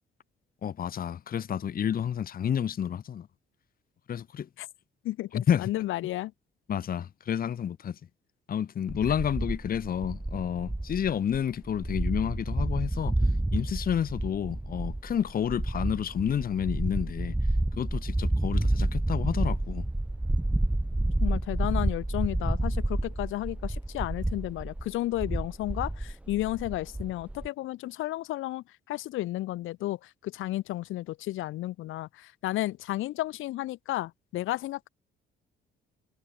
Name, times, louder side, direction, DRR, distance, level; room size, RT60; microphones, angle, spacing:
voice 1, 0.6-3.3 4.1-4.5 5.3-5.7 6.7-8.0 8.5-13.2 13.5-17.3 17.8-19.9, left 9 dB, 45° left, 0.9 m, -30 dB
voice 2, 5.0-6.3 21.2-34.9, left 16 dB, 85° left, 0.9 m, -33 dB
sound 1, 8.9-27.5, right 1 dB, 5° right, 0.6 m, -30 dB
cardioid pair, 90°, 20 cm